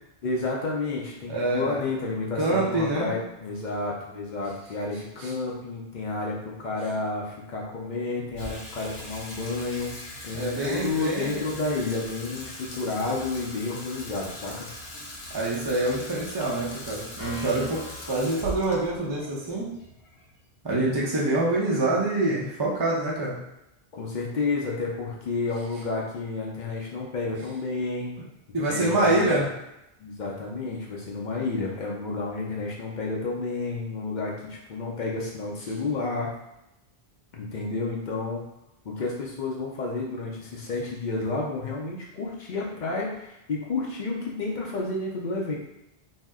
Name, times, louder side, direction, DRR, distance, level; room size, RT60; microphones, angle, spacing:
voice 1, 0.2-14.7 23.9-28.2 28.7-29.4 30.0-36.3 37.3-38.4 38.8-45.6, left 3 dB, 55° left, -2 dB, 0.6 m, -31 dB
voice 2, 1.3-1.9 2.4-3.1 5.2-5.3 10.3-11.4 15.3-17.8 18.1-19.7 20.6-23.4 28.5-29.5, right 2 dB, 30° right, -5 dB, 0.5 m, -26 dB
Water tap faucet / Sink (filling or washing), 8.3-20.7, left 1 dB, 90° left, 0.9 m, -41 dB
sound 1, 17.2-19.1, left 3 dB, 15° right, 1.0 m, -43 dB
2.7 x 2.1 x 3.5 m, 0.87 s
omnidirectional pair, 1.0 m